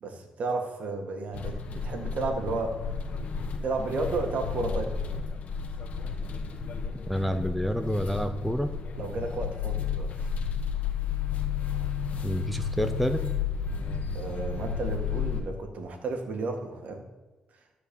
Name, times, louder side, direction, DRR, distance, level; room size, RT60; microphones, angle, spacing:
voice 1, 0.0-2.8 3.6-4.9 9.0-10.1 14.1-17.0, right 3 dB, 60° right, 4 dB, 1.9 m, -32 dB
sound 1, 1.3-15.4, left 6 dB, 60° left, 1.3 m, -32 dB
voice 2, 7.1-8.7 12.2-13.2, equal, ahead, 7 dB, 0.6 m, -28 dB
13.0 x 4.6 x 7.2 m, 1.2 s
cardioid pair, 95°, 3 cm